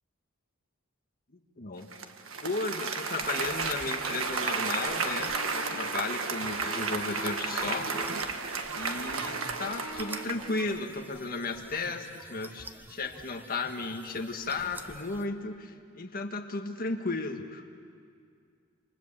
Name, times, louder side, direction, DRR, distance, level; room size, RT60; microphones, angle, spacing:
voice 1, 1.3-1.9 2.4-8.1 8.8-17.6, left 3 dB, 45° left, 4 dB, 1.8 m, -35 dB
Applause, 1.9-10.8, right 4 dB, 75° right, 1.6 m, -33 dB
sound 1, 3.2-15.3, right 2 dB, 10° right, 0.8 m, -49 dB
sound 2, 4.5-8.3 8.6-10.2, left 2 dB, 70° left, 3.0 m, -43 dB
28.0 x 26.5 x 7.5 m, 2.2 s
head